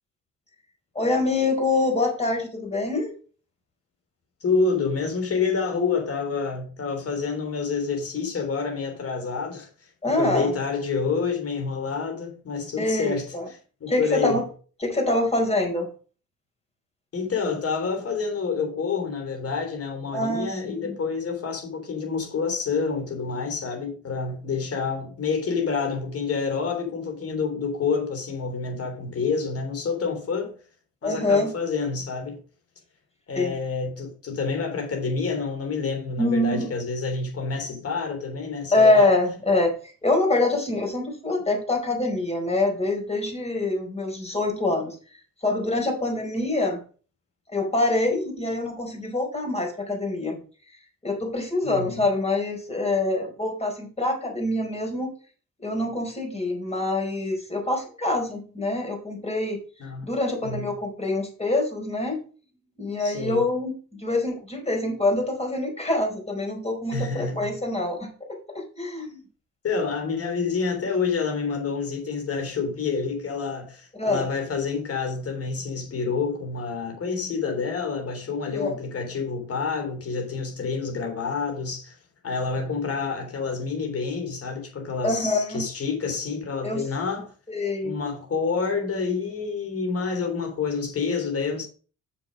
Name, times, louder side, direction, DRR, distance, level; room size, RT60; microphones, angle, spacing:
voice 1, 0.9-3.1 10.0-10.5 12.8-13.5 13.9-14.4 14.8-15.9 20.1-20.9 31.0-31.5 33.3-33.5 36.2-36.7 38.7-44.9 45.4-46.8 47.5-50.4 51.0-55.1 55.6-59.6 60.0-62.2 62.8-69.2 74.0-74.3 78.6-78.7 85.0-85.6 86.6-86.9 87.5-87.9, left 2 dB, 20° left, 4.5 m, -25 dB
voice 2, 4.4-9.7 10.0-13.3 13.8-14.5 17.1-30.5 31.0-32.4 33.3-39.1 51.6-52.0 59.8-60.1 60.4-60.7 63.0-63.4 66.9-67.5 69.6-82.0 82.2-87.3 87.8-91.7, left 5 dB, 50° left, 3.6 m, -28 dB
6.9 x 6.8 x 5.2 m
cardioid pair, 90°, 30 cm